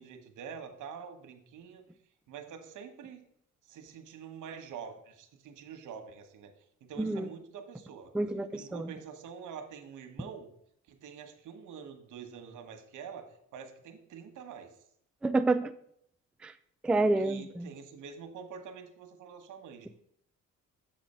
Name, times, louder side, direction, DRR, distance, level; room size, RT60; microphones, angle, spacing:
voice 1, 0.0-1.8 2.3-3.2 3.6-6.5 6.8-8.1 8.5-10.5 10.9-14.8 17.2-19.9, right 6 dB, 80° right, 7 dB, 1.1 m, -46 dB
voice 2, 7.0-7.3 8.1-8.9 15.2-15.7 16.4-16.5 16.8-17.7, right 2 dB, 5° right, 10 dB, 0.3 m, -28 dB
7.2 x 4.3 x 5.4 m, 0.70 s
cardioid pair, 90°, 30 cm